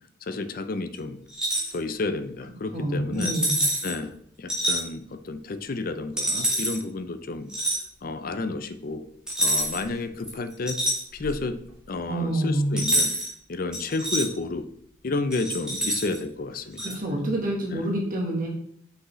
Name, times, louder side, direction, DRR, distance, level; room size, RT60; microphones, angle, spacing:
voice 1, 0.2-1.2 1.7-3.4 3.8-7.5 8.0-9.1 9.4-10.8 11.1-11.6 11.9-13.1 13.5-14.7 15.0-17.0 17.7-17.9, left 3 dB, 45° left, 10 dB, 0.4 m, -31 dB
sound 1, 1.3-1.7 3.2-3.9 4.5-4.8 6.2-6.8 7.5-7.8 9.3-9.9 10.2-11.4 12.8-13.3 13.7-14.3 15.3-16.2 16.8-16.9, right 1 dB, 5° right, 1.6 m, -26 dB
voice 2, 2.7-3.6 12.1-12.7 16.8-18.5, right 1 dB, 40° right, -2 dB, 1.3 m, -27 dB
6.0 x 5.3 x 3.1 m, 0.69 s
head